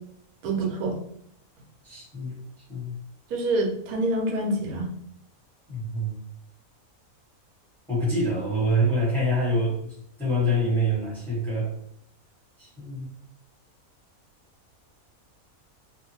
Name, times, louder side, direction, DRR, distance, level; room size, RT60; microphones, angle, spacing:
voice 1, 0.4-1.0 3.3-4.9, right 2 dB, 80° right, 1 dB, 1.1 m, -26 dB
voice 2, 1.8-2.4 2.7-2.9 5.7-6.2 7.9-11.7 12.6-13.1, equal, ahead, -7 dB, 1.0 m, -26 dB
2.8 x 2.2 x 2.6 m, 0.67 s
omnidirectional pair, 1.5 m